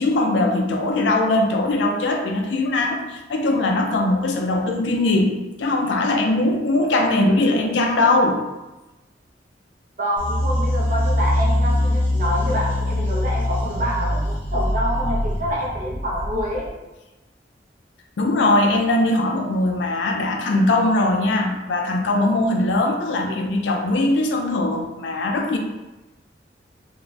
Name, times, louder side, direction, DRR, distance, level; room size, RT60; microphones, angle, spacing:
voice 1, 0.0-8.4 18.2-25.6, left 2 dB, 85° left, 2 dB, 0.4 m, -20 dB
voice 2, 10.0-16.7, equal, 45° right, -4 dB, 0.7 m, -27 dB
sound 1, 10.2-16.7, left 1 dB, 10° left, 0.5 m, -23 dB
2.5 x 2.1 x 3.2 m, 1.1 s
head